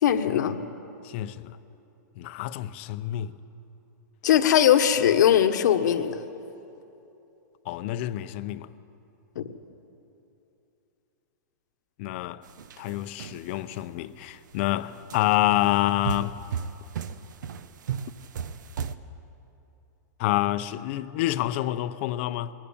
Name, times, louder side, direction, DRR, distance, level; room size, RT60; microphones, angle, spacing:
voice 1, 0.0-0.6 4.2-6.2 9.3-9.4, left 10 dB, 75° left, 1.4 m, -20 dB
voice 2, 1.0-1.6 2.2-3.3 7.7-8.7 12.0-12.4 12.8-16.4 20.2-22.5, left 15 dB, 40° left, 0.7 m, -27 dB
sound 1, 12.4-13.8 14.4-14.6 15.1-18.9, right 7 dB, 90° right, 1.0 m, -35 dB
21.5 x 19.5 x 8.8 m
supercardioid pair, 165°, 10 cm